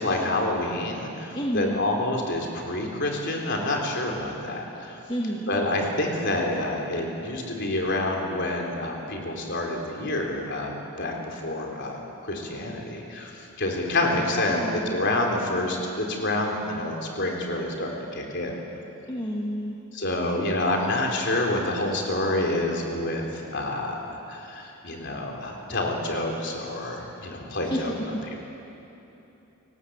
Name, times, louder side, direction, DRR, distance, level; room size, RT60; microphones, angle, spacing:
voice 1, 0.0-5.0 5.5-13.3 13.6-14.6 14.9-18.6 19.9-23.2 23.5-27.9 28.3-28.4, left 1 dB, 50° left, 1 dB, 3.8 m, -28 dB
voice 2, 1.3-2.0 5.1-5.5 14.4-14.8 19.1-19.8 27.6-28.1, equal, 20° left, -2 dB, 1.8 m, -30 dB
28.0 x 19.0 x 8.1 m, 2.9 s
head